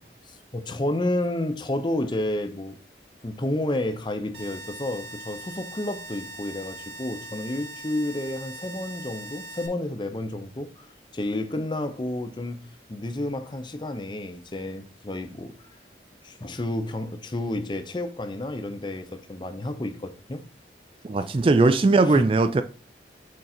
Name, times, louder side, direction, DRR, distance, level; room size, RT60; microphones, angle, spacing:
voice 1, 0.5-2.8 3.2-10.9 11.1-15.5 16.2-20.5 21.2-21.3 22.0-22.2, left 1 dB, 25° left, 0.6 m, -30 dB
sound 1, 4.3-9.7, right 1 dB, 65° right, 1.5 m, -41 dB
voice 2, 21.0-22.6, right 3 dB, 30° right, 0.3 m, -19 dB
6.5 x 3.9 x 4.3 m
head